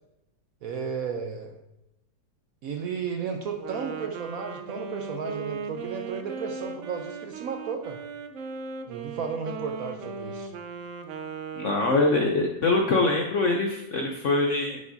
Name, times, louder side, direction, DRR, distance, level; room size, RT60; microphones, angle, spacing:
voice 1, 0.6-1.5 2.6-8.0 8.9-10.5, right 6 dB, 65° right, 4 dB, 0.9 m, -33 dB
Wind instrument woodwind instrument, 3.5-12.5, right 5 dB, 90° right, 0.6 m, -38 dB
voice 2, 11.6-14.8, left 3 dB, 65° left, 1 dB, 0.7 m, -24 dB
9.4 x 5.1 x 2.7 m, 0.88 s
omnidirectional pair, 2.0 m